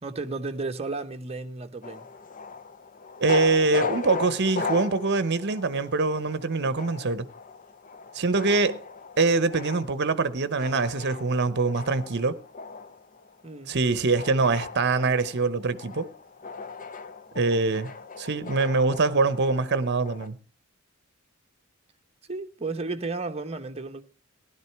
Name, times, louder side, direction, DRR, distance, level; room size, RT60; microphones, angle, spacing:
voice 1, 0.0-2.0 13.4-13.7 22.3-24.0, right 3 dB, 30° right, 1.0 m, -33 dB
sound 1, 1.8-20.3, left 4 dB, 40° left, 0.8 m, -38 dB
voice 2, 3.2-7.3 8.1-8.8 9.2-12.4 13.7-16.1 17.4-17.9 18.2-20.4, right 3 dB, 55° right, 0.9 m, -24 dB
16.0 x 11.5 x 4.6 m
head